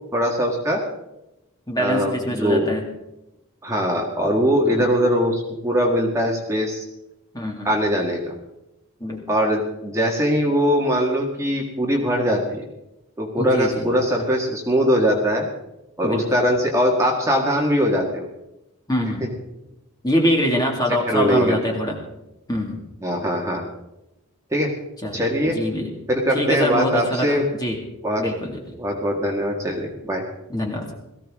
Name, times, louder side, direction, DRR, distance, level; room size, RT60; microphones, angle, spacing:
voice 1, 0.1-0.8 1.8-2.7 3.6-6.9 7.6-8.3 9.3-12.6 13.2-15.5 16.0-18.3 21.1-21.6 23.0-23.6 24.5-24.7 25.1-25.6 26.1-27.4 28.0-28.2 28.8-30.2, equal, 15° right, -1 dB, 1.9 m, -21 dB
voice 2, 1.7-2.9 4.6-4.9 7.3-7.7 9.0-9.2 13.4-13.9 16.0-16.4 18.9-19.2 20.0-22.0 22.5-22.8 25.0-25.2 25.5-25.9 26.3-27.8 28.2-28.8 30.5-30.9, equal, 15° left, 0 dB, 2.1 m, -24 dB
18.0 x 15.0 x 3.7 m, 0.89 s
head